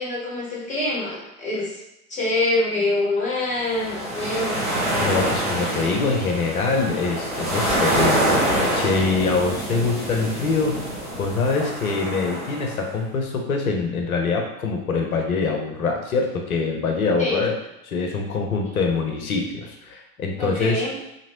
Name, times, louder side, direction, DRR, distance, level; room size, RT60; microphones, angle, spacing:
voice 1, 0.0-1.8 2.1-4.7 17.2-17.4 20.4-20.9, left 2 dB, 15° left, -5 dB, 1.1 m, -25 dB
sound 1, 3.6-12.9, right 1 dB, 40° right, 1.4 m, -25 dB
voice 2, 5.0-17.5 17.9-20.8, left 4 dB, 70° left, 2 dB, 0.8 m, -24 dB
3.0 x 2.9 x 2.9 m, 0.86 s
figure-of-eight pair, 85°, 45 cm